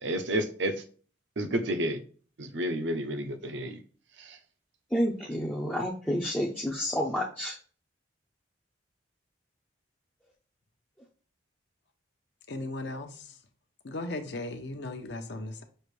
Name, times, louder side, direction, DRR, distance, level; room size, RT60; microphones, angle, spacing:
voice 1, 0.0-0.7 1.4-2.0 2.4-3.8 4.3-4.4, right 1 dB, 70° right, 0.7 m, -30 dB
voice 2, 4.9-7.6, equal, 5° left, 0.5 m, -29 dB
voice 3, 12.5-13.4 13.8-15.6, left 2 dB, 60° left, 0.7 m, -37 dB
6.5 x 2.5 x 3.2 m
head